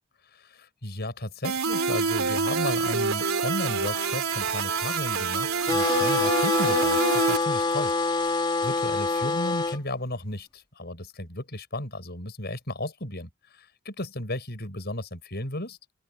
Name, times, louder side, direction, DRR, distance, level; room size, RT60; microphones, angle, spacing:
voice 1, 0.3-7.9 8.6-15.8, left 1 dB, 50° left, 7.2 m, -34 dB
sound 1, 1.4-7.4, right 4 dB, 75° right, 3.0 m, -26 dB
sound 2, 5.6-9.8, left 3 dB, 20° left, 2.7 m, -25 dB
open air
head